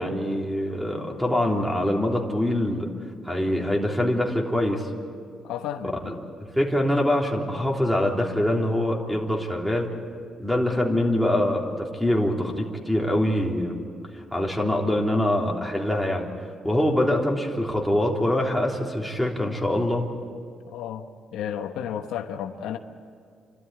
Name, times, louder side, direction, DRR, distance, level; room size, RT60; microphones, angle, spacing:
voice 1, 0.0-2.9 3.2-4.9 6.0-9.9 10.4-13.8 14.1-16.3 16.6-20.1, left 1 dB, ahead, -1 dB, 3.4 m, -24 dB
voice 2, 5.4-6.1 20.7-21.1 21.3-22.8, left 9 dB, 90° left, 6 dB, 1.1 m, -32 dB
29.5 x 13.0 x 9.9 m, 2.3 s
cardioid pair, 90°, 0 cm